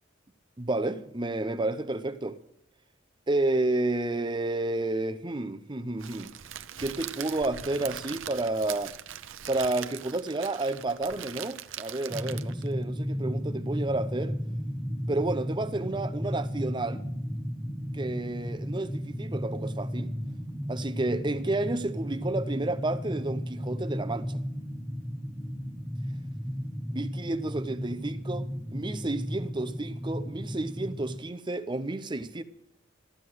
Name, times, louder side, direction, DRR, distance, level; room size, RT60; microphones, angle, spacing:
voice 1, 0.6-2.4 3.3-6.3 6.8-9.0 9.5-14.4 15.1-17.0 17.9-20.1 20.7-24.4 26.9-32.4, right 2 dB, 25° right, 0.7 m, -31 dB
Crackle, 6.0-12.7, right 10 dB, 90° right, 0.7 m, -41 dB
sound 1, 12.1-31.2, equal, 5° left, 1.1 m, -34 dB
14.0 x 9.8 x 7.9 m
head